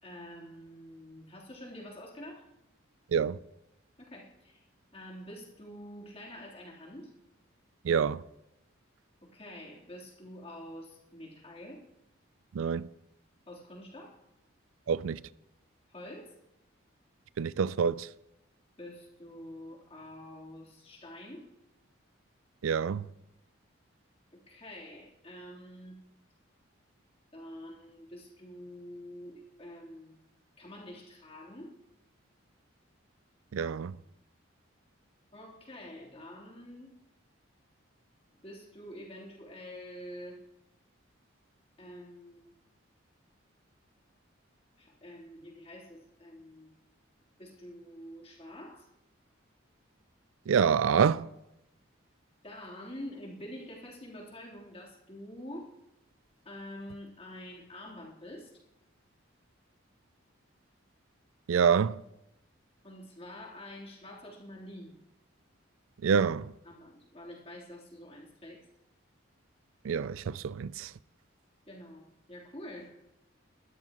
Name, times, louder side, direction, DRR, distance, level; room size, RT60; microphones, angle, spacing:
voice 1, 0.0-2.5 4.0-4.6 4.9-7.1 9.2-11.8 13.5-14.2 15.9-16.3 18.8-21.5 24.3-26.1 27.3-30.2 30.6-31.8 35.3-36.9 38.3-40.4 41.8-42.6 44.8-46.7 47.4-48.9 52.4-55.7 56.4-58.5 62.8-64.9 66.6-68.7 71.7-73.0, left 1 dB, 30° left, 3.5 m, -47 dB
voice 2, 7.8-8.2 12.5-12.9 14.9-15.2 17.4-18.1 22.6-23.1 33.5-34.0 50.5-51.3 61.5-62.0 66.0-66.5 69.8-70.9, right 6 dB, 85° right, 0.4 m, -27 dB
20.0 x 13.0 x 3.0 m
head